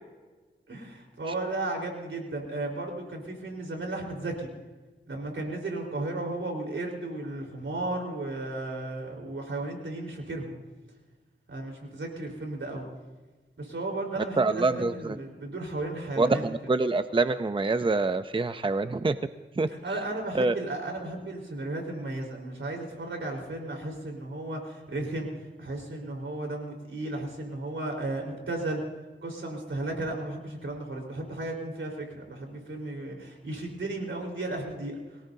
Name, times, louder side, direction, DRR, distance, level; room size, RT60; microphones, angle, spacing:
voice 1, 0.7-4.5 5.1-10.5 11.5-12.9 13.6-16.4 19.7-25.3 25.6-28.8 29.2-35.0, right 2 dB, 80° right, 1 dB, 4.2 m, -34 dB
voice 2, 14.4-15.2 16.2-19.2 19.6-19.7 20.3-20.5, right 3 dB, 25° right, 10 dB, 0.6 m, -25 dB
23.0 x 18.0 x 2.7 m, 1.3 s
wide cardioid pair, 65°, 20 cm